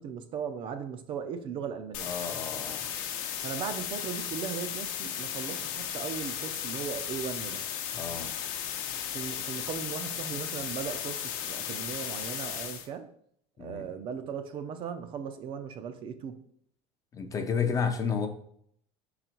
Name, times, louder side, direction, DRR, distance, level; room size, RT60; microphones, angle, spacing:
voice 1, 0.0-2.1 3.4-7.6 9.1-13.1 13.6-16.4, right 7 dB, 35° right, 8 dB, 0.5 m, -37 dB
sound 1, 1.9-12.9, left 9 dB, 65° left, 0.8 m, -35 dB
voice 2, 2.0-2.9 7.9-8.3 13.6-13.9 17.1-18.3, left 6 dB, 25° left, 6 dB, 0.6 m, -31 dB
5.4 x 4.0 x 4.3 m, 0.66 s
cardioid pair, 155°, 14 cm